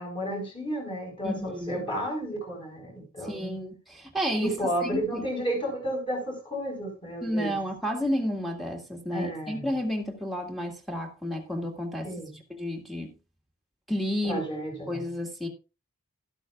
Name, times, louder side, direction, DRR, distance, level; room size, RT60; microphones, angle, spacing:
voice 1, 0.0-3.6 4.4-7.5 9.1-9.7 12.0-12.4 14.2-15.0, right 1 dB, 25° left, 5.3 m, -32 dB
voice 2, 1.2-1.9 3.2-5.2 7.2-12.1 12.5-13.1 13.9-14.4 14.9-15.5, equal, ahead, 1.9 m, -31 dB
12.5 x 12.0 x 2.4 m
head